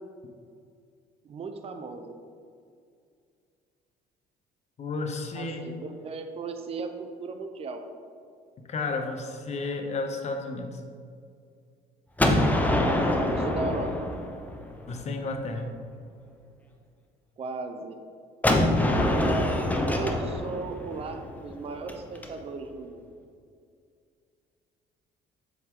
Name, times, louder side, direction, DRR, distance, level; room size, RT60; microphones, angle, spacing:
voice 1, 1.2-2.1 5.3-7.8 12.8-14.1 17.4-18.0 19.1-23.1, right 3 dB, 35° right, 6 dB, 0.6 m, -36 dB
voice 2, 4.8-5.7 8.7-10.8 14.9-15.8, left 3 dB, 40° left, 4 dB, 0.9 m, -32 dB
Gunshot gunfire, 12.2-15.0 18.4-22.3, left 1 dB, 10° left, 0.7 m, -25 dB
7.8 x 4.9 x 3.7 m, 2.3 s
cardioid pair, 110°, 17 cm